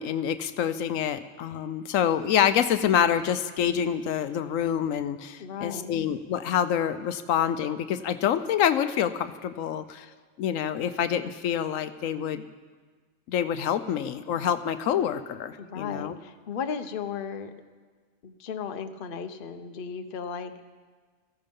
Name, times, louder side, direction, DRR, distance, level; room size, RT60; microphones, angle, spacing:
voice 1, 0.0-10.1 10.4-12.4 13.3-16.2, left 9 dB, 85° left, 11 dB, 1.0 m, -27 dB
voice 2, 5.4-6.0 15.6-17.5 18.2-20.7, left 6 dB, 50° left, 8 dB, 0.9 m, -35 dB
16.5 x 15.0 x 5.3 m, 1.5 s
omnidirectional pair, 1.4 m